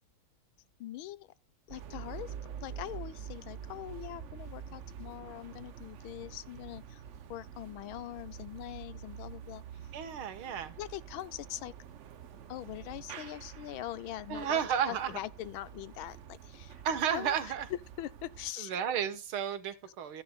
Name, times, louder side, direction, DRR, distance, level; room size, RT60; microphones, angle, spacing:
voice 1, 0.8-1.3 1.7-7.0 7.3-9.6 10.4-11.7 12.5-16.8 17.1-17.5 18.0-18.8, left 14 dB, 80° left, 1.5 m, -43 dB
sound 1, 1.7-18.5, right 8 dB, 65° right, 0.7 m, -47 dB
voice 2, 9.9-10.8 14.3-15.2 16.8-17.7 18.6-20.2, right 8 dB, 85° right, 2.1 m, -32 dB
14.0 x 10.5 x 2.3 m
omnidirectional pair, 2.2 m